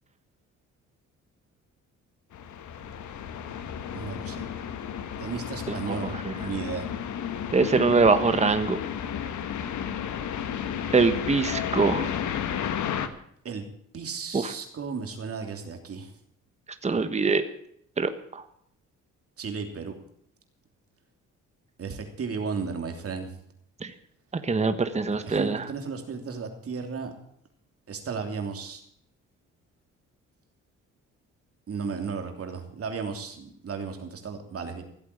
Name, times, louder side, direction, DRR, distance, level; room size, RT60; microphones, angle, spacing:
sound 1, 2.3-13.1, left 8 dB, 70° left, 1.5 m, -32 dB
voice 1, 3.9-4.4 5.2-6.9 13.4-13.6 13.9-16.1 19.4-19.9 21.8-23.3 25.1-27.1 27.9-28.8 31.7-34.8, right 5 dB, 50° right, 5 dB, 3.0 m, -34 dB
voice 2, 5.7-6.3 7.5-8.8 10.9-12.1 14.3-14.5 16.8-17.4 18.0-18.4 23.8-23.9 24.4-25.6, right 4 dB, 20° right, 9 dB, 1.3 m, -23 dB
15.5 x 8.5 x 8.5 m, 0.69 s
cardioid pair, 90°, 30 cm